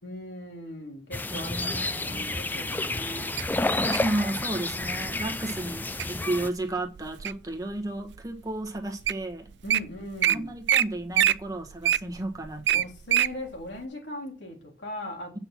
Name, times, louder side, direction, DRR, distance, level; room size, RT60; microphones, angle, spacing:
voice 1, 0.0-3.3 9.6-10.5 12.7-15.4, left 1 dB, 85° left, 3.3 m, -39 dB
sound 1, 1.1-6.5, left 2 dB, 10° left, 0.4 m, -30 dB
voice 2, 1.3-2.3 3.8-9.5 10.3-12.8, right 1 dB, 20° right, 1.3 m, -33 dB
Wild animals, 3.4-4.1 4.8-5.1 5.6-6.1 6.6-7.5 8.1-8.2 8.8-8.9 9.1-9.2 9.5-9.8 10.2-10.4 10.7-10.8 11.1-13.3 13.8-13.9, right 11 dB, 85° right, 0.5 m, -23 dB
8.9 x 5.9 x 6.1 m
head